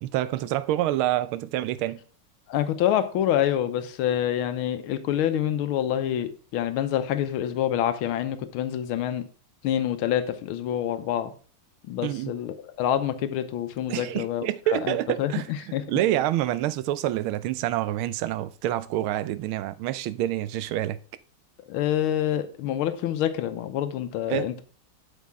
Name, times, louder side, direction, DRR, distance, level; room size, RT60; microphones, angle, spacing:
voice 1, 0.0-2.0 12.0-12.4 13.9-15.5 15.9-21.0 24.3-24.5, right 13 dB, 85° right, 1.5 m, -27 dB
voice 2, 2.5-9.2 9.6-11.3 11.9-14.5 14.7-15.8 21.7-24.6, left 11 dB, 90° left, 1.6 m, -27 dB
8.3 x 6.5 x 3.5 m
omnidirectional pair, 2.3 m